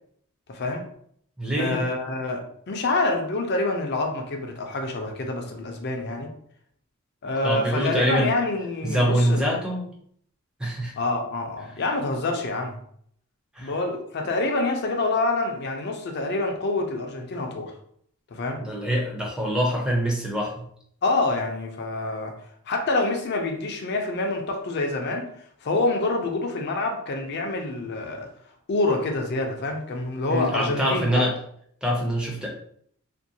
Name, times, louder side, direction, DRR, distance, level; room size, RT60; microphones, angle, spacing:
voice 1, 0.5-0.8 1.6-6.3 7.2-9.5 11.0-12.8 13.6-17.7 18.3-18.6 21.0-22.3 22.7-25.3 25.6-28.3 28.7-31.3, left 2 dB, 50° left, 4 dB, 0.4 m, -26 dB
voice 2, 1.4-1.9 7.4-8.3 8.8-9.9 10.6-10.9 13.5-13.8 18.6-20.7 30.3-31.3 31.8-32.5, equal, 5° right, -2 dB, 0.5 m, -24 dB
2.5 x 2.2 x 2.6 m, 0.65 s
head